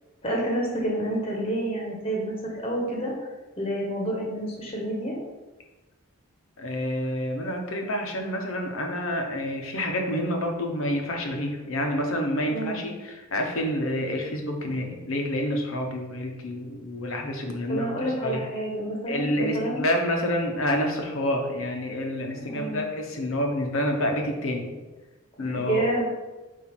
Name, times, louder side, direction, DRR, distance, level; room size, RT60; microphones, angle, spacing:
voice 1, 0.2-3.1 3.6-5.1 12.5-12.9 17.7-19.8 22.3-22.8 25.5-26.0, right 1 dB, 25° left, -2 dB, 1.1 m, -29 dB
voice 2, 6.6-18.4 19.1-24.8 25.4-25.8, left 1 dB, 80° left, 2 dB, 1.0 m, -28 dB
8.2 x 2.8 x 4.4 m, 1.2 s
head